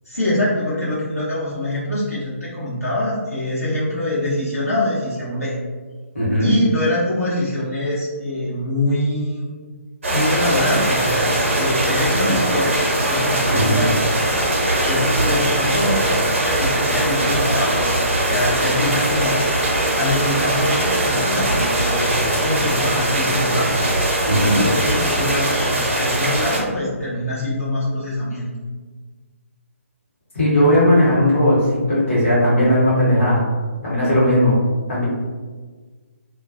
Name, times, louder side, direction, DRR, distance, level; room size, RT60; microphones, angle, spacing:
voice 1, 0.0-5.5 6.4-9.4 10.1-12.7 13.0-14.1 14.5-23.8 24.4-28.5, left 1 dB, 85° left, -9 dB, 0.9 m, -24 dB
voice 2, 6.1-6.5 13.5-13.8 24.2-24.6 30.3-31.6 31.9-33.4 33.8-34.5 34.9-35.0, equal, 60° left, -8 dB, 1.0 m, -17 dB
sound 1, 10.0-26.6, right 1 dB, 55° right, 0.6 m, -20 dB
2.3 x 2.1 x 2.5 m, 1.4 s
figure-of-eight pair, 140°, 8 cm